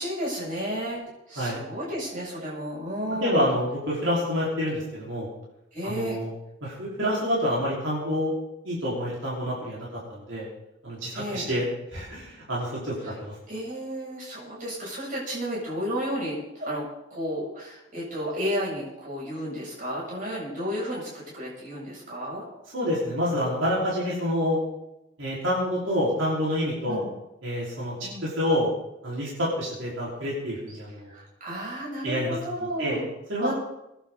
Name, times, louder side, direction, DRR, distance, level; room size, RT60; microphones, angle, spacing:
voice 1, 0.0-3.5 5.7-6.2 11.1-11.5 13.0-13.1 13.5-22.4 26.9-27.1 28.0-28.3 30.7-30.8 31.1-33.1 33.4-33.5, equal, 45° right, -5 dB, 7.7 m, -32 dB
voice 2, 3.2-5.3 5.8-6.3 6.6-8.3 8.6-10.5 10.8-11.6 11.9-12.9 13.2-13.3 22.7-24.6 25.2-27.0 27.4-27.9 28.2-28.7 29.0-31.1 32.0-33.0 33.3-33.5, equal, 75° right, -7 dB, 5.0 m, -27 dB
23.5 x 11.0 x 4.2 m, 0.89 s
head